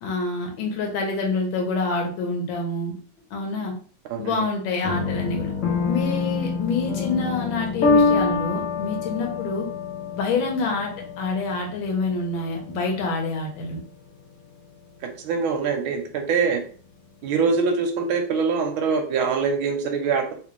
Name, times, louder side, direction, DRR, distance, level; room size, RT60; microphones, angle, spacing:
voice 1, 0.0-2.9 3.3-3.7 4.2-5.5 5.8-9.6 10.1-10.9 11.2-13.8, left 3 dB, 70° left, 1 dB, 1.6 m, -27 dB
sound 1, 4.8-13.9, left 4 dB, 90° left, 0.6 m, -26 dB
voice 2, 15.2-16.6 17.2-20.3, right 5 dB, 75° right, 5 dB, 1.4 m, -23 dB
3.8 x 2.6 x 3.0 m, 0.42 s
omnidirectional pair, 2.4 m